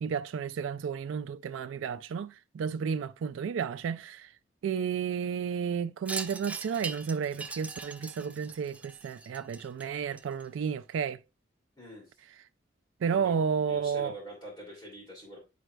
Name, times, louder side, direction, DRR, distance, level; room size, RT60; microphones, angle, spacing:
voice 1, 0.0-4.3 4.6-11.2 13.0-14.1, right 6 dB, 85° right, 0.3 m, -32 dB
Wind chime, 6.1-10.7, right 3 dB, 5° right, 0.3 m, -41 dB
voice 2, 11.8-12.1 13.1-15.4, equal, 25° left, 2.5 m, -45 dB
10.0 x 4.6 x 2.2 m
head